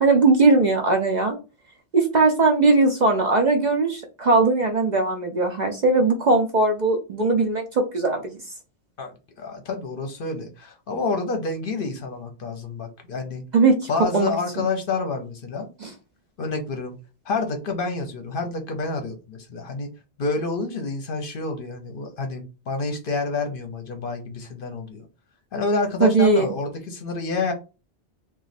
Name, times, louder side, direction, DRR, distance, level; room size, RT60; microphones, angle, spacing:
voice 1, 0.0-1.4 1.9-8.3 13.5-14.7 15.8-15.9 26.0-26.5, right 3 dB, 50° right, 3 dB, 0.6 m, -19 dB
voice 2, 9.4-13.4 13.9-15.7 16.4-17.0 17.3-19.9 20.2-25.1 25.5-27.5, left 3 dB, 60° left, 5 dB, 0.8 m, -28 dB
3.0 x 2.4 x 4.1 m, 0.31 s
omnidirectional pair, 1.1 m